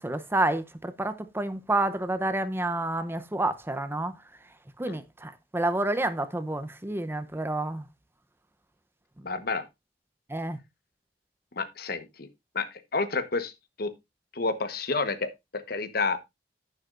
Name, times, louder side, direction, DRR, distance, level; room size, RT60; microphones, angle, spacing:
voice 1, 0.0-4.1 4.8-7.8 10.3-10.6, right 2 dB, 15° right, 0.7 m, -29 dB
voice 2, 9.2-9.6 11.6-12.3 12.5-13.5 13.8-13.9 14.3-16.2, left 3 dB, 60° left, 1.1 m, -30 dB
10.5 x 9.5 x 2.5 m
head